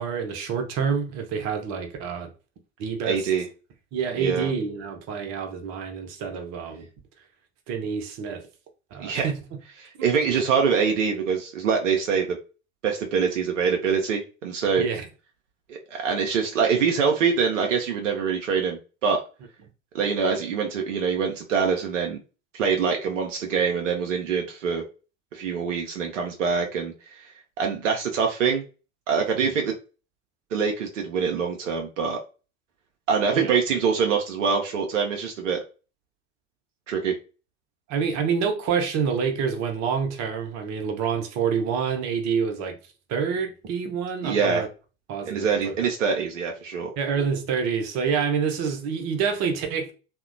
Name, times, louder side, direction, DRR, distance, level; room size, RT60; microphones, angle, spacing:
voice 1, 0.0-2.3 2.8-3.3 3.9-6.9 7.7-8.4 8.9-9.4 10.4-10.5 14.8-15.1 29.4-29.5 33.3-33.6 37.9-42.8 43.1-44.7 45.1-45.8 47.0-49.9, right 6 dB, 45° right, 0.8 m, -27 dB
voice 2, 3.0-3.5 4.1-4.5 9.0-9.3 9.8-12.4 12.8-14.8 15.7-19.2 19.9-22.2 22.5-24.8 25.3-27.2 27.6-28.6 29.1-29.7 30.5-32.2 33.1-35.6 36.9-37.1 44.2-44.6 45.2-46.9, right 6 dB, 80° right, 0.6 m, -24 dB
2.8 x 2.1 x 2.5 m
figure-of-eight pair, 70°, 37 cm